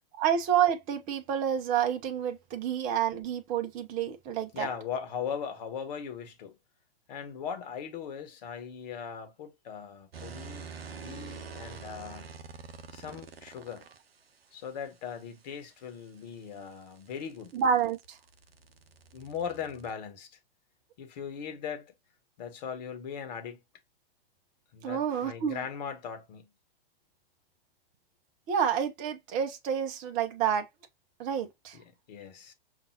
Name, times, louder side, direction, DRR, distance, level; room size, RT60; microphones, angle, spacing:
voice 1, 0.2-4.7 17.5-18.2 24.8-25.6 28.5-30.7 31.2-31.8, right 8 dB, 25° right, 0.7 m, -29 dB
voice 2, 4.5-6.6 7.1-12.3 12.9-13.9 14.5-17.5 19.1-20.4 21.0-21.9 22.4-23.6 24.7-26.5 31.7-32.5, left 7 dB, 45° left, 1.1 m, -39 dB
sound 1, 10.1-14.0 16.3-19.9, right 5 dB, 75° right, 0.6 m, -46 dB
5.3 x 2.5 x 2.7 m
figure-of-eight pair, 105°, 30 cm